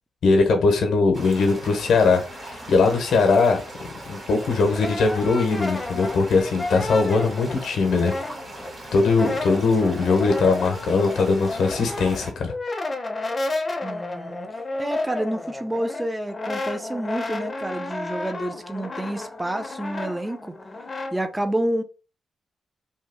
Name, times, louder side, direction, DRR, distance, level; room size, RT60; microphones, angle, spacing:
voice 1, 0.2-8.1 8.9-12.5, left 4 dB, 75° left, 0.7 m, -20 dB
sound 1, 1.1-12.3, right 1 dB, 35° right, 1.6 m, -39 dB
Brass instrument, 4.3-8.7 9.0-21.1, left 2 dB, 35° left, 0.6 m, -32 dB
voice 2, 13.8-14.5 14.8-20.5 21.1-21.8, right 1 dB, 15° right, 0.5 m, -29 dB
2.8 x 2.2 x 3.3 m
cardioid pair, 75°, 0 cm